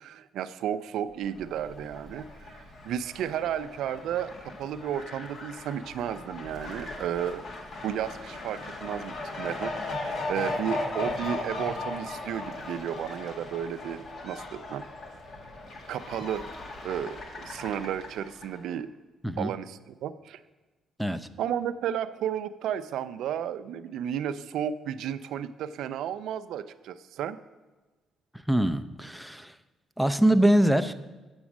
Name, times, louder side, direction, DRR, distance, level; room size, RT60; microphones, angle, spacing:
voice 1, 0.0-7.4 7.8-14.8 15.9-16.5 16.8-18.9 19.4-20.4 21.4-27.4, right 9 dB, 80° right, 12 dB, 0.4 m, -33 dB
Fowl, 1.2-18.6, left 2 dB, 55° left, 1.6 m, -38 dB
voice 2, 28.5-29.5 30.0-30.9, right 1 dB, ahead, 12 dB, 0.5 m, -23 dB
7.9 x 6.2 x 7.2 m, 1.2 s
cardioid pair, 90°, 0 cm